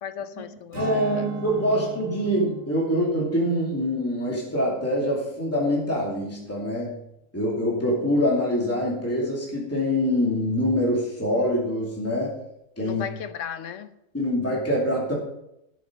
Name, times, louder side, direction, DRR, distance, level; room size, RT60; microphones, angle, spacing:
voice 1, 0.0-1.3 12.8-13.9, left 8 dB, 70° left, 1.1 m, -36 dB
voice 2, 0.7-7.0 7.3-12.3 12.8-13.0 14.1-15.1, equal, 10° left, 2.6 m, -24 dB
Strum, 0.7-5.4 5.8-6.0, left 4 dB, 80° right, 3.0 m, -41 dB
13.0 x 7.3 x 5.1 m
omnidirectional pair, 1.4 m